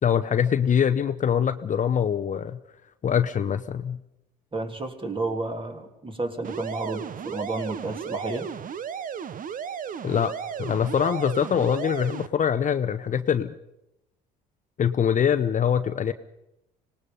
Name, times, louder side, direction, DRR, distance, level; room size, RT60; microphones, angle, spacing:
voice 1, 0.0-2.6 3.0-4.0 10.0-10.3 10.6-13.5 14.8-16.1, left 8 dB, 40° left, 10 dB, 0.8 m, -23 dB
voice 2, 4.5-8.5, right 2 dB, 25° right, 5 dB, 3.1 m, -31 dB
sound 1, 6.4-12.3, right 8 dB, 40° right, 0.9 m, -34 dB
25.5 x 19.0 x 5.4 m, 0.87 s
hypercardioid pair, 60°, 21 cm